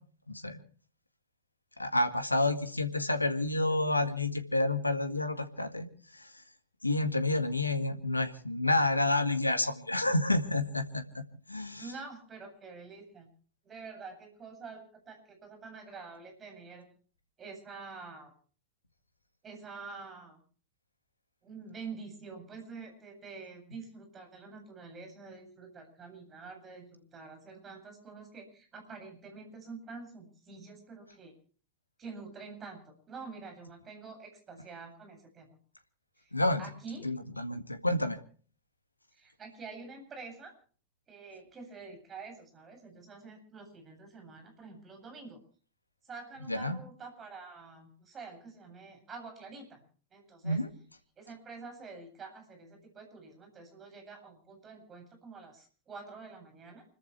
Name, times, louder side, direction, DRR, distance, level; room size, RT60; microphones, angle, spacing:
voice 1, 0.3-0.6 1.8-5.9 6.1-6.3 6.8-11.2 11.5-11.8 36.3-36.6 37.0-38.2 46.5-46.8 50.4-50.7, left 2 dB, 85° left, 9 dB, 1.9 m, -29 dB
voice 2, 11.8-13.3 13.6-16.9 17.4-18.3 19.4-20.4 21.4-31.3 32.0-35.5 36.2-36.3 36.6-37.1 39.1-40.5 41.1-45.4 46.0-49.8 50.1-50.6 51.2-56.8, right 4 dB, 25° right, 4 dB, 7.9 m, -47 dB
29.0 x 14.0 x 3.3 m, 0.43 s
figure-of-eight pair, 90°, 0 cm